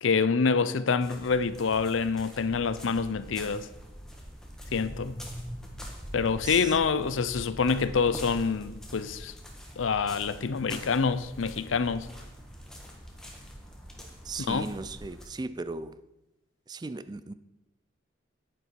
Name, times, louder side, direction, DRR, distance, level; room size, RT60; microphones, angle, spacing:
voice 1, 0.0-3.7 4.7-5.2 6.1-9.3 9.8-12.1 14.4-14.7, left 5 dB, 90° left, 0.6 m, -26 dB
sound 1, 1.0-15.3, equal, 5° left, 1.4 m, -44 dB
voice 2, 14.2-16.0 16.7-17.3, right 3 dB, 20° right, 0.3 m, -37 dB
10.0 x 9.6 x 4.6 m
head